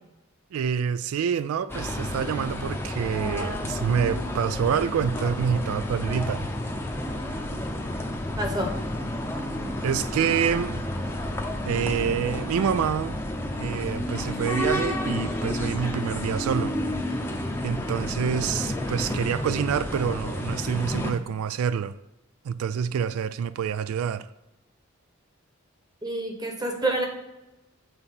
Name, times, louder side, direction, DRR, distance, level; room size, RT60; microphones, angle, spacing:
voice 1, 0.5-6.5 9.8-10.9 11.6-13.2 13.6-16.8 17.6-22.0 22.4-24.3, right 7 dB, 80° right, 0.3 m, -27 dB
sound 1, 1.7-21.1, left 1 dB, 10° left, 0.6 m, -30 dB
voice 2, 8.4-8.7 26.0-27.0, right 1 dB, 20° right, 1.0 m, -27 dB
8.0 x 4.0 x 5.7 m
head